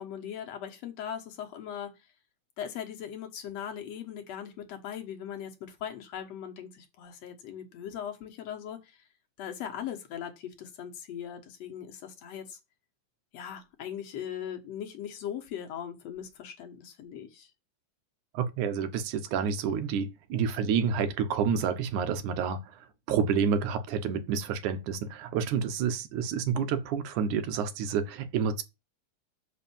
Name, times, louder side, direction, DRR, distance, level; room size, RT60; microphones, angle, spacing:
voice 1, 0.0-1.9 2.6-9.0 9.4-12.6 13.3-17.5, left 9 dB, 60° left, 2.3 m, -39 dB
voice 2, 18.3-28.6, right 6 dB, 75° right, 2.4 m, -29 dB
7.1 x 5.5 x 7.2 m
omnidirectional pair, 3.7 m